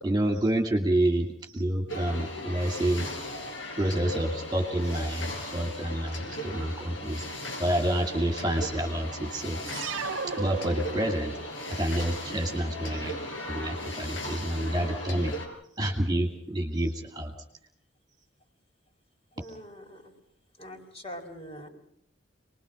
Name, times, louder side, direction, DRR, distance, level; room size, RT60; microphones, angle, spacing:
voice 1, 0.0-3.1 3.8-7.3 7.6-9.6 10.4-11.3 11.7-13.1 13.5-15.3 15.8-17.3 19.4-19.5, right 1 dB, 20° right, 2 dB, 2.4 m, -28 dB
sound 1, 1.9-15.5, left 1 dB, 85° left, 5.3 m, -37 dB
sound 2, 9.6-11.5, right 5 dB, 85° right, 0.9 m, -35 dB
voice 2, 19.3-20.1 20.6-21.7, equal, 30° left, 3 dB, 4.7 m, -43 dB
27.5 x 21.0 x 5.2 m, 0.72 s
head